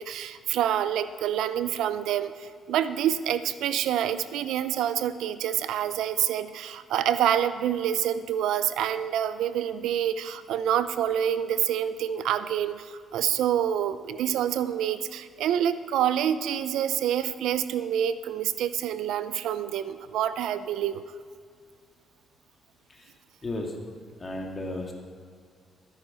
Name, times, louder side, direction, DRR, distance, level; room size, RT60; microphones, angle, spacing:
voice 1, 0.0-21.0, right 10 dB, 85° right, 13 dB, 0.6 m, -27 dB
voice 2, 23.4-23.7 24.2-24.9, left 2 dB, 25° left, 1 dB, 2.3 m, -34 dB
13.0 x 9.8 x 5.6 m, 2.2 s
cardioid pair, 90°, 0 cm